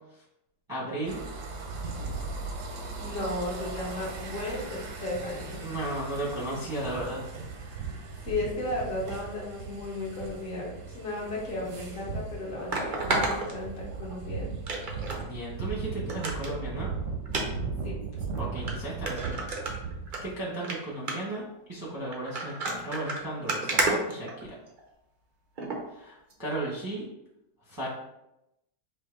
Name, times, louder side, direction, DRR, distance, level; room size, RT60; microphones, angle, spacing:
voice 1, 0.7-1.2 5.6-7.3 15.2-16.9 18.4-19.6 20.2-24.3 25.9-27.1 27.6-27.9, right 1 dB, 20° right, -6 dB, 0.7 m, -35 dB
sound 1, 1.1-20.3, right 4 dB, 65° right, 0.8 m, -38 dB
voice 2, 3.0-5.6 8.2-14.6 17.8-18.0, left 2 dB, 50° left, -4 dB, 1.3 m, -34 dB
sound 2, 11.6-11.7 12.7-14.2 14.7-15.2 15.6-15.7 16.1-16.5 17.3-17.5 18.2-18.3 18.7-18.8 19.1-20.2 20.5-20.8 21.1-21.4 22.1-24.8 25.6-25.8 26.3-26.4, right 2 dB, 80° right, 0.4 m, -30 dB
4.3 x 2.7 x 3.7 m, 0.87 s
omnidirectional pair, 1.9 m